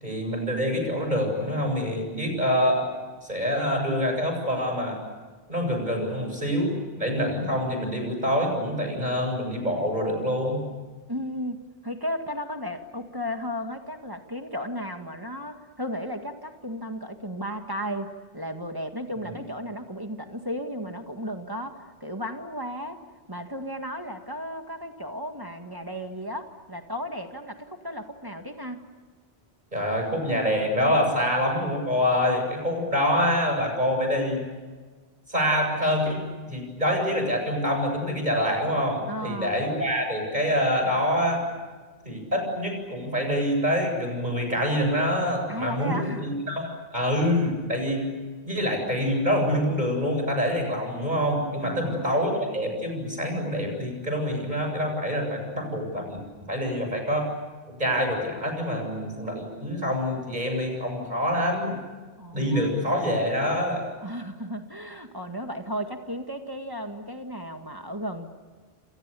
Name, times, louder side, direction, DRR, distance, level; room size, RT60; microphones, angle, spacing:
voice 1, 0.0-2.9 3.2-5.0 5.5-10.6 19.2-19.3 29.7-34.5 35.3-36.2 36.5-41.4 42.1-46.7 46.9-48.0 48.4-56.2 56.5-57.3 57.8-61.8 62.3-63.8, equal, 40° right, 3 dB, 8.0 m, -26 dB
voice 2, 11.1-23.0 23.3-28.8 39.1-39.6 45.5-46.3 51.6-52.2 62.2-62.9 64.0-68.3, equal, 20° right, 5 dB, 1.9 m, -34 dB
30.0 x 27.5 x 7.0 m, 1.4 s
omnidirectional pair, 1.1 m